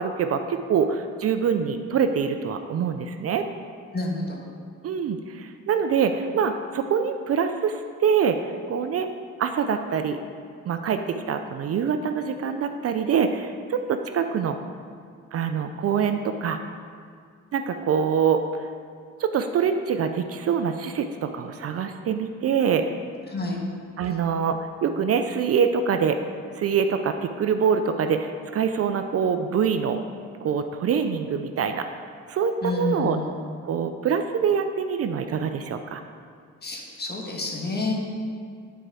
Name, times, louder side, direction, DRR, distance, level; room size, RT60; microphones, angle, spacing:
voice 1, 0.0-3.4 4.8-8.4 8.7-9.1 9.4-10.2 10.7-14.6 15.3-16.6 17.5-18.7 19.2-22.8 24.0-26.2 26.6-30.0 30.4-31.9 32.3-33.2 33.6-36.0, right 7 dB, 50° right, 7 dB, 0.5 m, -25 dB
voice 2, 3.9-4.4 23.3-23.6 32.6-33.4 36.6-37.9, left 2 dB, 35° left, -1 dB, 1.5 m, -29 dB
9.1 x 4.5 x 4.9 m, 2.1 s
cardioid pair, 90°, 30 cm